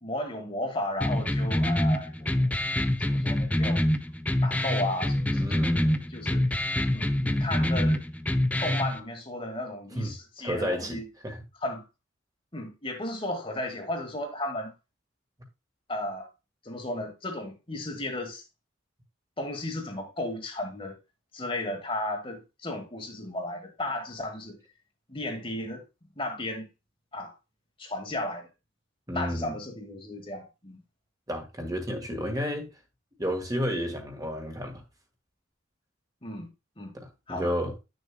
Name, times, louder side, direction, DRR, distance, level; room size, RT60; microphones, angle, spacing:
voice 1, 0.0-2.5 3.0-3.9 4.4-6.6 6.9-8.0 8.6-11.1 11.6-11.8 12.5-14.7 15.9-16.3 16.6-18.4 19.4-21.0 21.3-24.6 25.1-25.8 26.2-26.7 27.1-27.3 27.8-28.5 29.1-30.8 36.2-36.5 36.8-36.9 37.3-37.5, left 1 dB, 25° left, 1.3 m, -34 dB
sound 1, 1.0-9.0, left 1 dB, 5° left, 0.4 m, -26 dB
voice 2, 5.3-6.0 9.9-11.4 29.1-29.6 31.3-32.7 33.2-34.8 36.9-37.7, equal, 15° right, 1.5 m, -32 dB
10.0 x 6.7 x 2.2 m
head